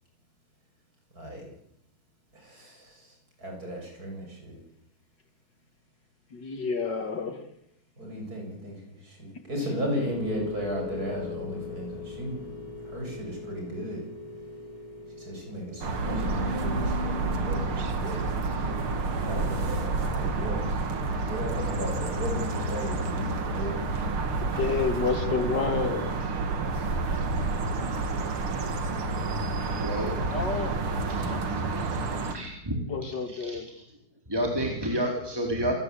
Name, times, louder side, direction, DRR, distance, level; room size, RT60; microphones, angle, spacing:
voice 1, 1.1-1.5 2.3-4.6 8.0-12.5 12.8-14.0 15.2-18.3 18.7-20.9 21.2-23.8, equal, 45° right, 1 dB, 8.4 m, -35 dB
voice 2, 6.3-7.4 24.4-26.1 30.3-30.8 31.3-31.4 32.9-33.7, left 4 dB, 55° left, 8 dB, 2.8 m, -29 dB
sound 1, 10.0-26.2, left 5 dB, 75° left, 4.4 m, -41 dB
sound 2, 15.8-32.4, right 3 dB, 85° right, 3.1 m, -29 dB
voice 3, 29.8-30.1 31.1-31.4 31.7-32.0 32.3-33.8 34.3-35.7, right 1 dB, 10° right, 0 dB, 4.1 m, -31 dB
27.5 x 18.0 x 8.6 m, 0.81 s
omnidirectional pair, 2.3 m